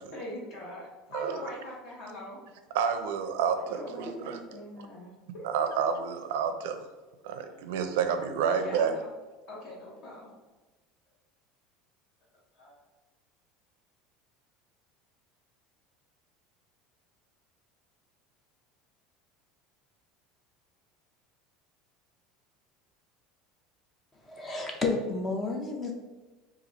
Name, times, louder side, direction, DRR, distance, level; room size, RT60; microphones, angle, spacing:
voice 1, 0.1-2.4 3.6-5.5 8.5-9.1 9.5-10.3 12.5-12.8, left 1 dB, 45° left, -4 dB, 1.4 m, -42 dB
voice 2, 2.7-4.4 5.4-6.8 7.2-8.9, right 7 dB, 85° right, 8 dB, 0.5 m, -29 dB
voice 3, 24.3-25.9, left 3 dB, 20° left, 2 dB, 0.5 m, -31 dB
4.3 x 2.5 x 4.0 m, 1.2 s
cardioid pair, 160°, 0 cm